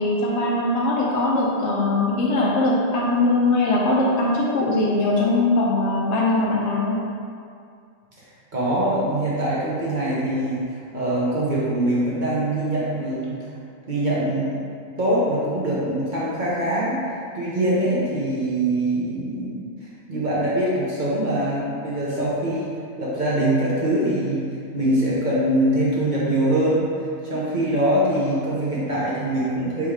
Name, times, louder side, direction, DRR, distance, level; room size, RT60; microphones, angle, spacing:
voice 1, 0.0-7.0, left 2 dB, 65° left, -4 dB, 0.8 m, -21 dB
voice 2, 8.5-13.5 13.9-14.6 15.0-17.0 17.3-26.9 27.2-29.9, right 1 dB, 40° right, -8 dB, 0.8 m, -23 dB
3.5 x 3.0 x 4.7 m, 2.3 s
omnidirectional pair, 1.4 m